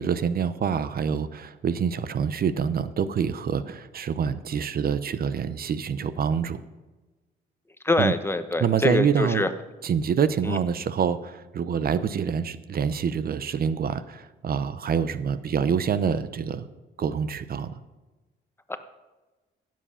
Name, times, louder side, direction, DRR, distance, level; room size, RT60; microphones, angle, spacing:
voice 1, 0.0-6.6 8.0-8.1 8.6-9.4 9.8-16.7 17.0-17.8, right 7 dB, 50° right, 14 dB, 0.7 m, -26 dB
voice 2, 7.8-9.5 10.5-10.6 18.7-18.8, left 2 dB, 10° left, 10 dB, 1.0 m, -24 dB
15.5 x 7.6 x 5.6 m, 1.2 s
cardioid pair, 90°, 20 cm